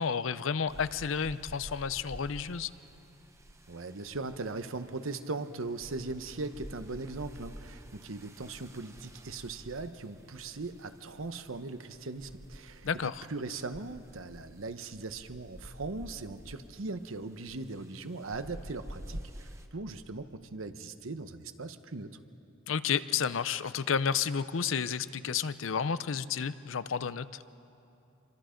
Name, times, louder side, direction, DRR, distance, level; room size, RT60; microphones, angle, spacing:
voice 1, 0.0-2.7 12.8-13.3 22.7-27.3, left 6 dB, 70° left, 15 dB, 0.6 m, -31 dB
sound 1, 0.7-19.7, equal, 15° right, 1.0 m, -50 dB
voice 2, 3.7-22.2, right 3 dB, 80° right, 10 dB, 1.0 m, -39 dB
27.0 x 24.5 x 5.2 m, 2.8 s
head